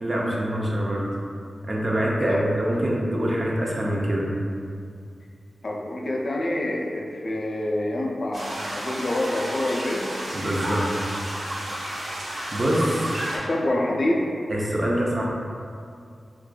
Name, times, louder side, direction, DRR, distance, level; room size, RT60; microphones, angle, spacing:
voice 1, 0.0-1.1 1.7-4.3 10.3-10.8 12.5-13.1 14.5-15.2, right 1 dB, 35° right, -3 dB, 0.5 m, -24 dB
voice 2, 5.6-10.0 12.9-14.2, left 1 dB, 50° left, -1 dB, 0.4 m, -27 dB
sound 1, 8.3-13.4, right 1 dB, 80° right, 0.8 m, -32 dB
4.7 x 2.5 x 2.2 m, 2.3 s
wide cardioid pair, 110°, 0 cm